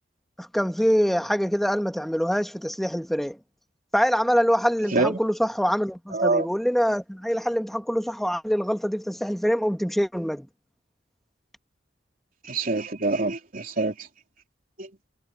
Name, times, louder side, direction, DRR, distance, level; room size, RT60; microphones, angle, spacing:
voice 1, 0.4-3.4 3.9-10.5, equal, ahead, 1.6 m, -24 dB
voice 2, 4.9-5.2 6.1-6.5 12.4-14.1 14.8-14.9, right 3 dB, 50° right, 3.6 m, -25 dB
head